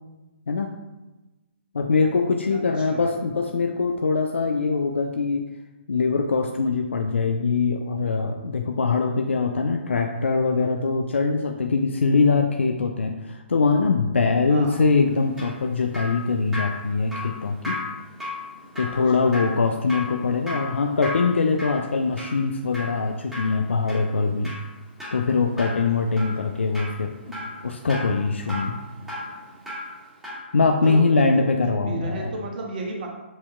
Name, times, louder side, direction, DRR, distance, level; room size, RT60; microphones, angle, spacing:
voice 1, 1.7-5.4 5.9-17.8 18.8-24.5 25.1-28.7 30.5-32.3, left 4 dB, 80° left, 4 dB, 0.4 m, -23 dB
voice 2, 2.5-3.1 14.5-14.8 18.8-19.4 30.8-33.1, right 3 dB, 50° right, 1 dB, 0.7 m, -34 dB
Drip, 15.1-30.5 30.8-31.0, left 2 dB, 5° right, 1.4 m, -36 dB
7.4 x 2.8 x 2.4 m, 1.1 s
figure-of-eight pair, 135°, 6 cm